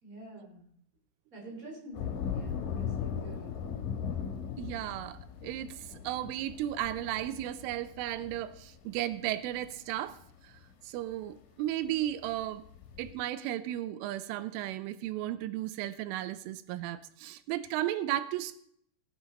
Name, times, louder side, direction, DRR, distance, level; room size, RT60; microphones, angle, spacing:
voice 1, 0.0-0.7 1.3-3.5, right 2 dB, 20° right, -1 dB, 3.8 m, -47 dB
sound 1, 1.9-10.7 11.8-11.9 12.2-13.1, left 7 dB, 55° left, 2.9 m, -38 dB
voice 2, 4.6-10.2 10.4-10.5 10.8-12.6 13.0-18.6, right 13 dB, 90° right, 13 dB, 3.3 m, -35 dB
17.5 x 8.8 x 5.3 m, 0.68 s
omnidirectional pair, 5.5 m